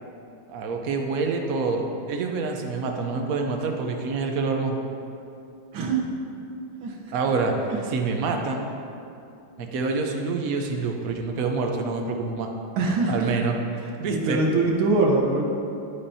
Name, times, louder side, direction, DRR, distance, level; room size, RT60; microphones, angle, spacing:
voice 1, 0.5-4.8 7.1-7.5 7.9-8.7 9.6-12.5 13.1-13.6 14.0-14.4, right 4 dB, 60° right, 3 dB, 1.0 m, -26 dB
voice 2, 6.8-7.1 7.7-7.8 12.8-13.3 14.1-15.4, right 3 dB, 80° right, -1 dB, 1.9 m, -23 dB
11.5 x 8.7 x 2.7 m, 2.7 s
omnidirectional pair, 2.2 m